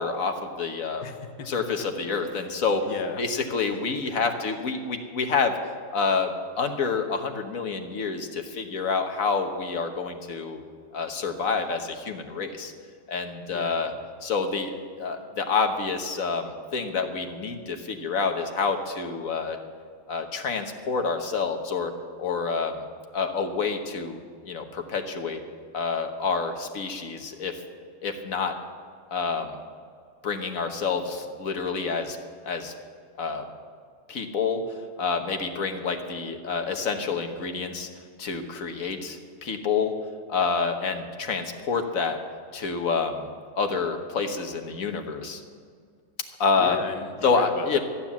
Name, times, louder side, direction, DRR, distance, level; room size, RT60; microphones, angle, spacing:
voice 1, 0.0-1.0 1.5-2.8 3.2-5.5 5.9-10.6 10.9-12.7 13.1-13.9 14.2-19.6 20.1-21.9 22.2-22.8 23.1-24.2 24.4-25.4 25.7-27.6 28.0-28.5 29.1-29.6 30.2-32.2 32.4-32.7 33.2-33.4 34.1-34.6 35.0-37.9 38.2-39.9 40.3-42.2 42.5-43.3 43.6-45.4 46.4-46.8 47.2-47.8, left 5 dB, 60° left, 5 dB, 1.6 m, -28 dB
voice 2, 1.0-1.5 2.3-2.6 2.8-3.2 4.1-4.2 13.5-13.8 46.6-47.8, left 6 dB, 80° left, 6 dB, 1.6 m, -36 dB
14.0 x 9.9 x 7.2 m, 2.1 s
omnidirectional pair, 1.7 m